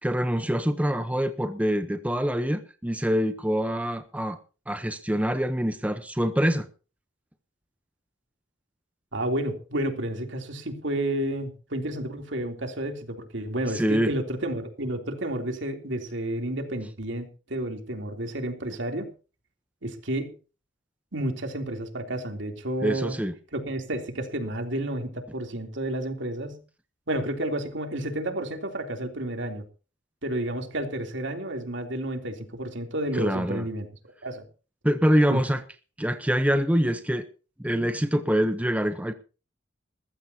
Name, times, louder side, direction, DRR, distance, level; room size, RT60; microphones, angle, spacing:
voice 1, 0.0-4.4 4.7-6.7 13.7-14.1 22.8-23.3 33.1-33.7 34.8-35.6 36.0-37.2 37.6-39.1, equal, 10° right, 0.9 m, -25 dB
voice 2, 9.1-19.1 19.8-20.3 21.1-23.1 23.5-26.6 27.1-29.6 30.2-33.9 34.2-34.5 35.3-35.4, right 1 dB, 70° right, 3.3 m, -31 dB
20.5 x 15.0 x 2.9 m
head